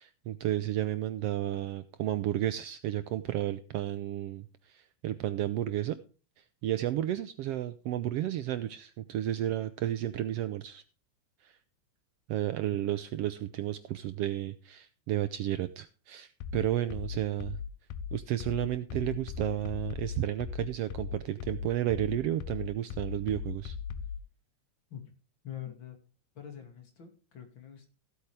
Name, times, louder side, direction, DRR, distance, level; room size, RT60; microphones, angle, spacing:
voice 1, 0.0-6.0 6.6-10.8 11.4-11.5 12.3-17.6 18.1-23.8, right 13 dB, 75° right, 12 dB, 1.4 m, -32 dB
sound 1, 16.4-24.2, left 7 dB, 80° left, 2.1 m, -38 dB
voice 2, 25.4-25.9 26.4-27.9, left 10 dB, 40° left, 5 dB, 2.9 m, -44 dB
17.0 x 8.3 x 3.4 m, 0.35 s
omnidirectional pair, 3.4 m